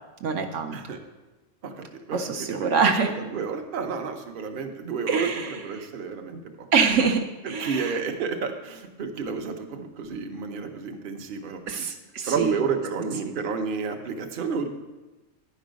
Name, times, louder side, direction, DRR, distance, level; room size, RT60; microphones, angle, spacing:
voice 1, 0.2-0.8 2.1-3.1 5.1-5.6 6.7-8.0 11.7-12.5, right 5 dB, 70° right, 4 dB, 1.0 m, -24 dB
voice 2, 0.7-1.1 1.6-2.8 3.2-6.7 7.4-11.9 12.3-14.7, right 5 dB, 50° right, 5 dB, 0.8 m, -31 dB
9.7 x 5.4 x 5.1 m, 1.1 s
omnidirectional pair, 1.3 m